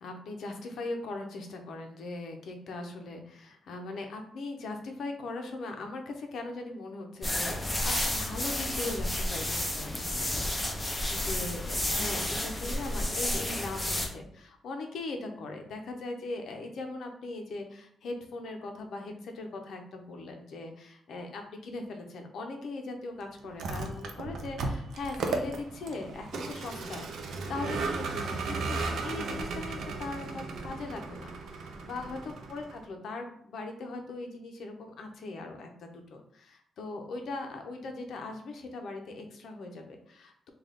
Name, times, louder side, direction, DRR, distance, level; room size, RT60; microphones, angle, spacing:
voice 1, 0.0-40.5, left 2 dB, 65° left, 4 dB, 0.6 m, -40 dB
sound 1, 7.2-14.1, left 1 dB, 10° left, 0.5 m, -31 dB
Vehicle, 23.4-32.8, right 3 dB, 70° right, 0.5 m, -35 dB
3.7 x 2.3 x 3.5 m, 0.65 s
wide cardioid pair, 165°, 0 cm